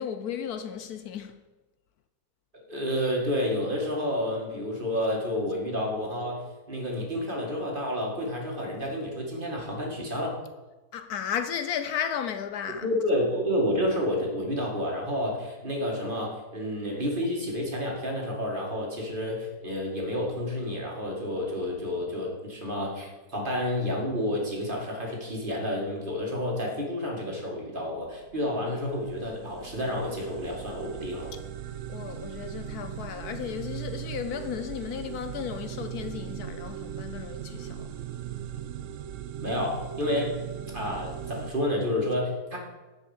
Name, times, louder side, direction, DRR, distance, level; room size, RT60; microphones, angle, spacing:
voice 1, 0.0-1.4 10.9-12.9 31.9-37.9, left 8 dB, 70° left, 1.1 m, -34 dB
voice 2, 2.5-10.4 12.8-31.3 39.4-40.3 40.7-42.6, left 1 dB, 30° right, 2.3 m, -30 dB
sound 1, 28.1-41.5, right 10 dB, 65° right, 0.8 m, -39 dB
10.0 x 5.2 x 7.2 m
omnidirectional pair, 1.8 m